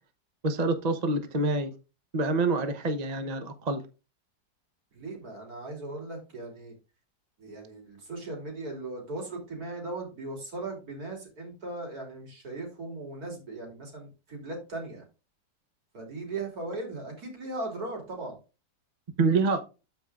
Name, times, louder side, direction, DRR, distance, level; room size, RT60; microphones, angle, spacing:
voice 1, 0.4-1.7 2.1-3.8 19.2-19.6, right 3 dB, 35° right, 8 dB, 0.7 m, -26 dB
voice 2, 5.0-6.7 7.4-15.0 15.9-18.4, right 2 dB, 65° right, 1 dB, 3.6 m, -38 dB
13.0 x 5.5 x 2.4 m, 0.30 s
omnidirectional pair, 1.8 m